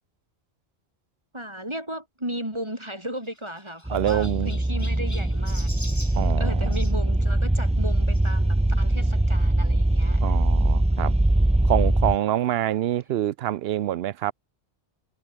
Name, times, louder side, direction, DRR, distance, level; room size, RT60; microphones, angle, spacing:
voice 1, 1.3-10.4, equal, 25° right, 7.2 m, -35 dB
Chirp tweet, 2.6-7.0 8.1-8.3 9.0-9.1 9.3-9.4 10.7-10.8, left 1 dB, 15° left, 2.2 m, -44 dB
sound 1, 3.9-12.1, right 1 dB, 10° right, 0.5 m, -22 dB
voice 2, 3.9-4.6 6.1-6.7 10.2-11.1 11.7-14.3, right 12 dB, 70° right, 0.8 m, -26 dB
omnidirectional pair, 1.1 m